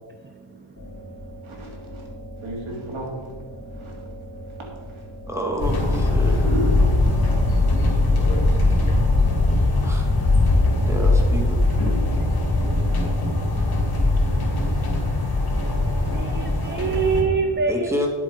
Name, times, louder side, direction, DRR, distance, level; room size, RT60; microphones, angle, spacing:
voice 1, 0.3-0.7 1.0-1.1 12.9-13.0 16.1-17.9, right 5 dB, 25° right, 7 dB, 0.5 m, -25 dB
sound 1, 0.7-11.3, equal, 25° left, 3.0 m, -40 dB
voice 2, 1.4-2.0 2.4-3.1 3.8-3.9 5.8-6.7 8.1-8.4 14.6-14.8 15.6-15.7 16.0-16.1 16.7-16.8 17.2-17.5, right 1 dB, 70° right, -1 dB, 3.3 m, -33 dB
voice 3, 5.3-6.4 9.8-10.1 10.9-11.6 17.7-18.1, equal, 5° right, 0 dB, 2.1 m, -28 dB
sound 2, 5.6-17.2, left 2 dB, 45° left, 2.8 m, -20 dB
10.0 x 7.8 x 5.1 m, 1.5 s
wide cardioid pair, 95°, 49 cm